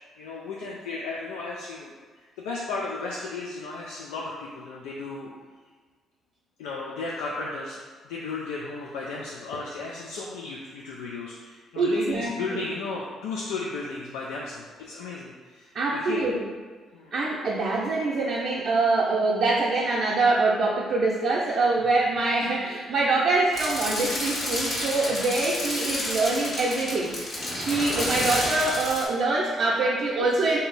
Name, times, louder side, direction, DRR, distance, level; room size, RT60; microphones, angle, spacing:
voice 1, 0.2-1.9 2.4-5.3 6.6-16.3 16.9-17.1 25.0-25.3, left 3 dB, 85° left, -3 dB, 0.4 m, -34 dB
voice 2, 11.8-12.6 15.7-16.4 17.1-30.6, right 3 dB, 60° right, -4 dB, 0.5 m, -24 dB
sound 1, 23.5-29.0, left 1 dB, 50° left, 1.4 m, -30 dB
3.5 x 2.7 x 4.0 m, 1.5 s
hypercardioid pair, 55°, 0 cm